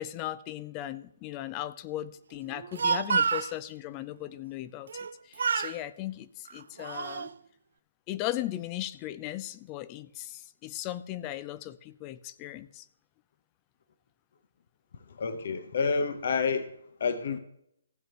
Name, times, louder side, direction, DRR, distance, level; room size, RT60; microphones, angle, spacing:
voice 1, 0.0-7.3 8.1-12.9, left 14 dB, 25° left, 0.5 m, -37 dB
Speech, 2.5-3.5 4.9-5.1 5.4-5.8 6.5-7.3, right 6 dB, 65° right, 0.4 m, -29 dB
voice 2, 15.1-16.7 17.0-17.4, left 5 dB, 55° left, 0.9 m, -29 dB
15.0 x 8.6 x 3.0 m
hypercardioid pair, 145°, 0 cm